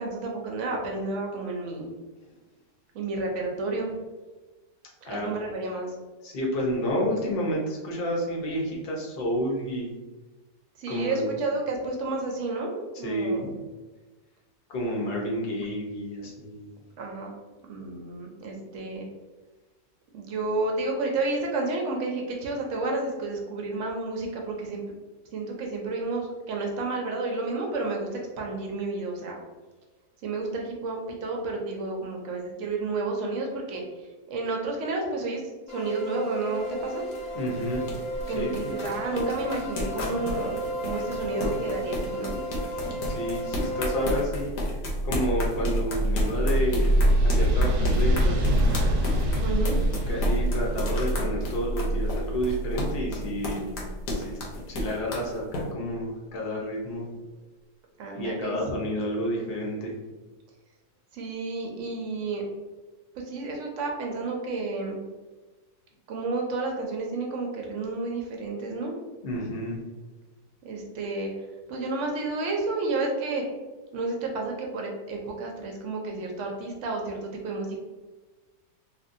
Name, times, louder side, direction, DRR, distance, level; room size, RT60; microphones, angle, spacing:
voice 1, 0.0-1.9 2.9-3.9 5.1-5.9 10.8-13.6 17.0-17.4 17.7-19.1 20.1-24.8 25.3-28.1 28.4-29.4 30.2-33.8 34.3-35.4 35.7-37.0 38.3-42.3 49.4-49.8 53.5-53.9 58.0-58.6 61.1-62.4 63.2-65.0 66.1-68.9 70.6-71.3 71.7-73.4 73.9-77.2 77.4-77.8, right 3 dB, 65° right, 0 dB, 0.8 m, -31 dB
voice 2, 6.2-9.9 10.9-11.3 13.0-13.4 14.7-16.7 37.3-37.8 38.3-38.8 43.1-44.5 45.0-46.9 47.2-48.4 50.1-53.6 54.1-54.4 54.7-57.1 58.2-59.9 69.2-69.8, equal, 50° left, -2 dB, 0.7 m, -30 dB
sound 1, 35.7-44.2, right 1 dB, 70° left, 1.0 m, -34 dB
sound 2, 36.6-55.6, left 1 dB, 90° left, 1.3 m, -33 dB
sound 3, 43.9-54.5, right 1 dB, 90° right, 1.2 m, -25 dB
2.9 x 2.6 x 2.5 m, 1.2 s
omnidirectional pair, 1.7 m